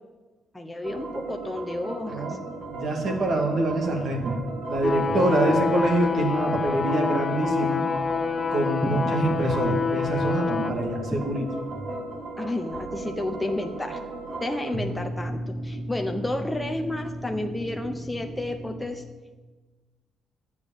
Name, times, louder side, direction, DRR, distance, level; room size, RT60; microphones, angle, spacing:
voice 1, 0.5-2.4 8.8-9.1 11.1-11.3 12.4-14.0 14.4-19.0, left 1 dB, 10° left, 3 dB, 0.9 m, -31 dB
sound 1, 0.8-18.9, right 2 dB, 40° right, 2.0 m, -36 dB
voice 2, 2.7-4.4 4.7-7.8 8.5-11.5, right 2 dB, 60° right, 2 dB, 2.3 m, -25 dB
sound 2, 4.8-10.7, left 6 dB, 40° left, 0.6 m, -27 dB
10.5 x 8.3 x 7.1 m, 1.3 s
cardioid pair, 90°, 0 cm